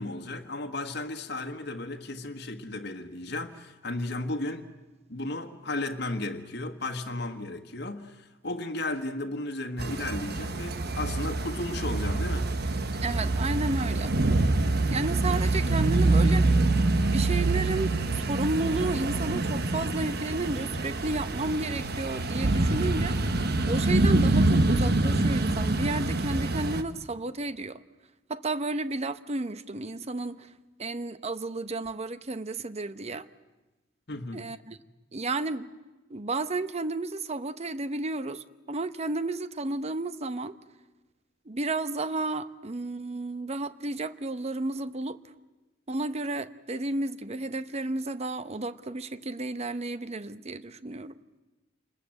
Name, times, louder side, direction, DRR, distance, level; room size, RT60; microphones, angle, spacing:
voice 1, 0.0-4.7 5.1-12.6 34.1-34.5, left 2 dB, 60° left, 1.6 m, -34 dB
sound 1, 9.8-26.8, right 2 dB, 60° right, 1.2 m, -26 dB
voice 2, 13.0-14.2 14.9-16.5 17.0-23.3 23.7-27.8 28.3-30.5 30.8-33.3 34.3-34.8 35.1-35.7 36.1-40.5 41.5-45.2 45.9-51.2, right 2 dB, 35° right, 0.8 m, -32 dB
28.0 x 20.5 x 7.8 m
head